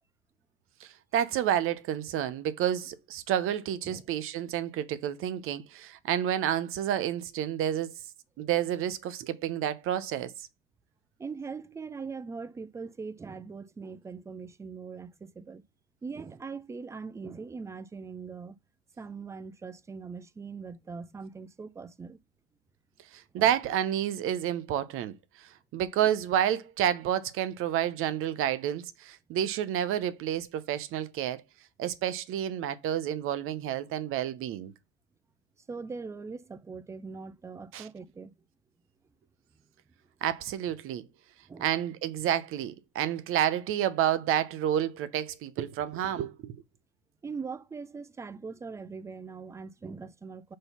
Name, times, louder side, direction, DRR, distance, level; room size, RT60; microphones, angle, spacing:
voice 1, 0.8-7.9 8.4-10.5 23.1-31.4 31.8-34.7 37.7-37.9 40.2-41.1 41.6-46.5, right 10 dB, 40° right, 0.9 m, -30 dB
voice 2, 11.2-15.6 16.0-18.6 19.0-22.2 23.3-23.5 35.7-38.3 41.5-41.7 47.2-50.6, right 5 dB, 10° right, 0.5 m, -41 dB
5.2 x 4.0 x 5.7 m
hypercardioid pair, 90°, 34 cm